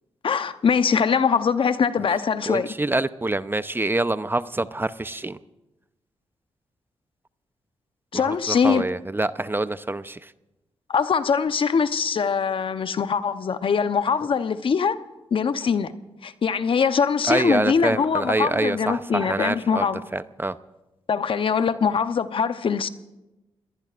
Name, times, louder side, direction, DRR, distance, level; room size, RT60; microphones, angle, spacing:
voice 1, 0.2-2.7 8.1-8.8 10.9-14.9 15.3-15.9 16.2-20.0 21.1-22.9, left 6 dB, 55° left, 0.9 m, -22 dB
voice 2, 2.5-5.4 8.1-10.3 17.3-20.6, right 2 dB, 20° right, 0.7 m, -26 dB
28.5 x 19.5 x 2.6 m
supercardioid pair, 45°, 10 cm